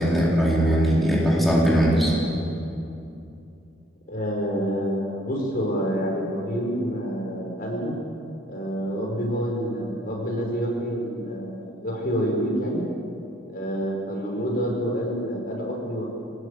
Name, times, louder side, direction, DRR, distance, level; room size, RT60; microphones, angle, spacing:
voice 1, 0.0-2.2, equal, ahead, -5 dB, 4.2 m, -20 dB
voice 2, 4.1-7.9 8.5-12.8 13.5-16.0, equal, 50° left, 0 dB, 5.4 m, -27 dB
23.5 x 19.0 x 8.5 m, 2.6 s
head